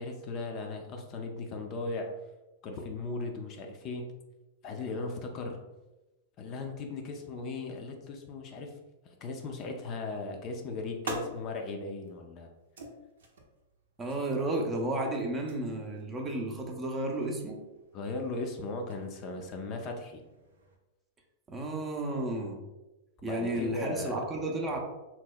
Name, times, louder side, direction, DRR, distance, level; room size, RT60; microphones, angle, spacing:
voice 1, 0.0-2.1 2.6-4.1 4.6-5.6 6.4-8.7 9.0-12.5 17.9-20.2 23.3-24.2, left 3 dB, 40° left, 3 dB, 0.5 m, -37 dB
sound 1, 10.4-20.8, right 2 dB, 80° right, 0.7 m, -48 dB
voice 2, 14.0-17.6 21.5-22.6 23.2-24.8, right 1 dB, 20° right, 1 dB, 0.6 m, -32 dB
2.9 x 2.1 x 3.9 m, 1.0 s
hypercardioid pair, 115°, 0 cm